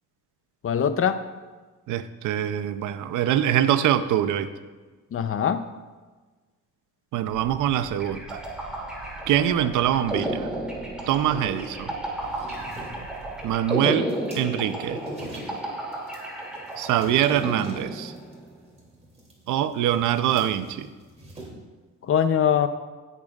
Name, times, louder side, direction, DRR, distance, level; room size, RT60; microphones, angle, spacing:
voice 1, 0.6-1.2 5.1-5.7 22.0-22.7, left 8 dB, 45° left, 11 dB, 0.7 m, -22 dB
voice 2, 1.9-4.5 7.1-8.4 9.3-10.5 11.1-11.9 13.4-14.1 14.3-15.0 16.8-18.1 19.5-20.9, right 11 dB, 85° right, 12 dB, 0.6 m, -24 dB
sound 1, 7.3-13.6, right 3 dB, 55° right, 1.2 m, -46 dB
sound 2, 8.0-18.4, right 1 dB, 5° right, 2.6 m, -33 dB
sound 3, 12.2-21.5, right 1 dB, 20° right, 2.8 m, -45 dB
19.0 x 6.7 x 2.4 m, 1.3 s
cardioid pair, 90°, 30 cm